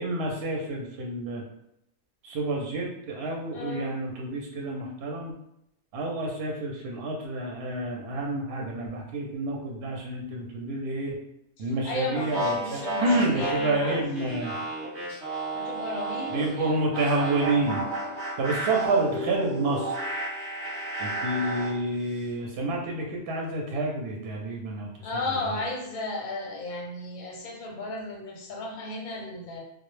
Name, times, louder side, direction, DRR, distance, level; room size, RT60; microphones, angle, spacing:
voice 1, 0.0-1.4 2.2-5.3 5.9-11.2 11.6-14.5 16.3-17.9 18.4-20.0 21.0-24.9 25.4-25.6, right 2 dB, 65° right, -1 dB, 0.7 m, -29 dB
voice 2, 3.5-4.0 11.6-14.4 15.5-16.8 21.3-21.6 25.0-29.6, left 2 dB, 50° left, -1 dB, 0.6 m, -35 dB
sound 1, 12.2-16.5 16.9-21.8, right 1 dB, 25° right, 0.7 m, -32 dB
2.0 x 2.0 x 3.0 m, 0.78 s
omnidirectional pair, 1.2 m